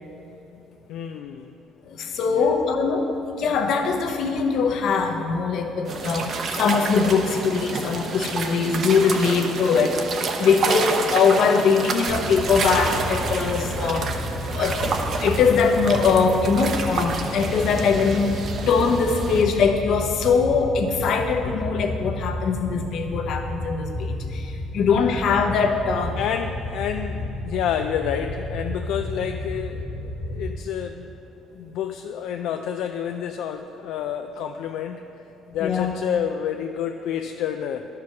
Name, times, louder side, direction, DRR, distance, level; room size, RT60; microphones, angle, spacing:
voice 1, 0.9-1.5 2.3-2.5 26.2-31.1 31.5-35.0 35.5-37.9, left 9 dB, 75° left, 6 dB, 0.3 m, -29 dB
voice 2, 1.9-10.0 10.4-14.1 14.5-14.8 15.2-26.2 35.6-35.9, left 5 dB, 60° left, 4 dB, 0.8 m, -22 dB
sound 1, 5.9-19.4, right 4 dB, 45° right, 0.7 m, -29 dB
sound 2, 12.1-30.6, left 1 dB, 20° left, 0.6 m, -32 dB
11.5 x 4.7 x 5.9 m, 2.9 s
cardioid pair, 145°, 0 cm